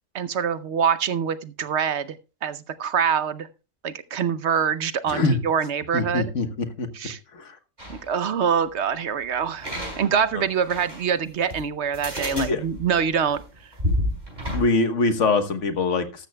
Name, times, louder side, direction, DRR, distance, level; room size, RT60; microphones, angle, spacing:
voice 1, 0.1-2.2 2.4-3.5 3.8-6.3 6.9-7.2 7.9-9.7 10.0-13.4, right 7 dB, 60° right, 14 dB, 1.0 m, -25 dB
voice 2, 5.1-5.4 5.9-6.9 7.3-7.6 10.3-10.4 12.3-12.6 14.5-16.3, left 3 dB, 65° left, 9 dB, 1.5 m, -23 dB
sound 1, 7.8-8.1 9.6-11.1 11.5-11.6 11.9-14.6, left 1 dB, 35° right, 5.3 m, -30 dB
13.5 x 13.0 x 2.2 m, 0.31 s
omnidirectional pair, 1.3 m